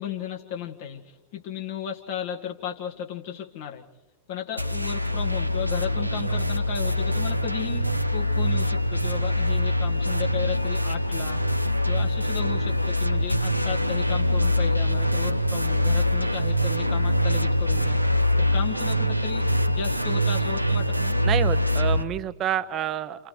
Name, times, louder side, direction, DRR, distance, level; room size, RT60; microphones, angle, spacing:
voice 1, 0.0-3.8 4.3-11.4 11.8-18.0 18.4-21.1, left 8 dB, 50° left, 2 dB, 1.8 m, -35 dB
sound 1, 4.6-22.0, left 1 dB, 90° right, 0.7 m, -24 dB
voice 2, 21.2-23.3, right 10 dB, 30° right, 11 dB, 0.8 m, -28 dB
29.0 x 28.5 x 3.3 m, 1.2 s
figure-of-eight pair, 90°, 0 cm